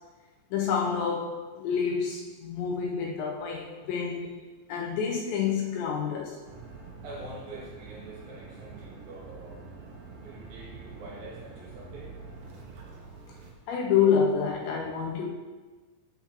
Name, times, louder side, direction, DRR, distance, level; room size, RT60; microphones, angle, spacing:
voice 1, 0.5-4.3 4.7-6.4 13.7-15.3, left 6 dB, 80° left, 0 dB, 2.7 m, -28 dB
sound 1, 6.5-13.5, right 4 dB, 85° right, 1.9 m, -46 dB
voice 2, 7.0-9.6 10.2-12.1, right 2 dB, 60° right, -4 dB, 2.8 m, -45 dB
7.9 x 7.1 x 2.9 m, 1.3 s
omnidirectional pair, 5.5 m